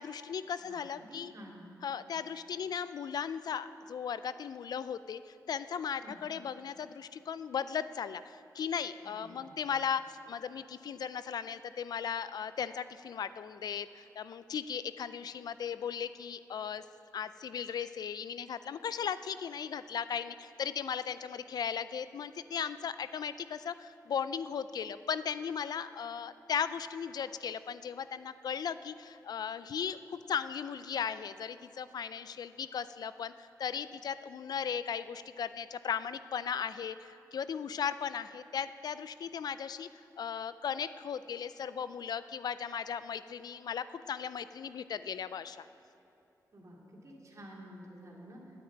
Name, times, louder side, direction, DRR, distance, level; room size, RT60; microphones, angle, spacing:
voice 1, 0.0-1.3 1.8-16.8 17.1-39.9 40.2-45.7, left 7 dB, 75° left, 14 dB, 0.4 m, -37 dB
voice 2, 0.6-1.7 6.0-6.2 9.0-9.6 46.5-48.5, equal, 50° right, -2 dB, 2.5 m, -51 dB
9.6 x 8.6 x 9.1 m, 2.8 s
cardioid pair, 90°, 7 cm